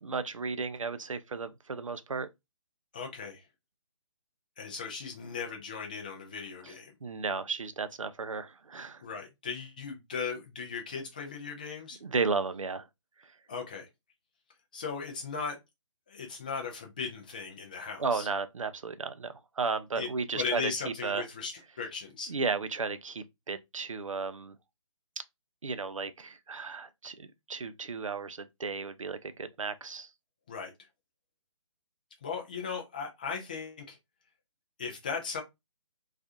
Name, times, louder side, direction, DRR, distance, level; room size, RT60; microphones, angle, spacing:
voice 1, 0.0-2.3 6.6-6.7 7.0-9.0 12.0-12.9 18.0-20.7 21.0-21.2 22.3-24.6 25.6-30.1, right 4 dB, 75° right, 0.4 m, -34 dB
voice 2, 2.9-3.5 4.6-7.0 9.0-12.0 13.5-13.9 14.7-15.6 16.1-18.3 20.0-20.1 20.3-22.4 30.5-30.9 32.2-34.0 34.8-35.4, left 5 dB, 15° left, 0.3 m, -37 dB
2.4 x 2.3 x 2.5 m
figure-of-eight pair, 140°, 17 cm